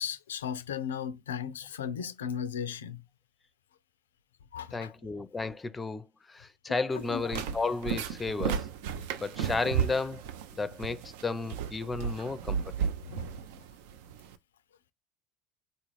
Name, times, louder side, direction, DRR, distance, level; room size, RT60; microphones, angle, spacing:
voice 1, 0.0-3.0 4.5-4.9 6.7-7.2 13.1-13.3, left 8 dB, 80° left, 0.3 m, -36 dB
voice 2, 4.7-6.1 6.3-8.7 9.2-10.2 10.6-12.6, left 3 dB, 20° left, 0.5 m, -33 dB
sound 1, 6.9-14.3, right 7 dB, 65° right, 0.4 m, -34 dB
4.1 x 2.4 x 3.1 m
hypercardioid pair, 70°, 0 cm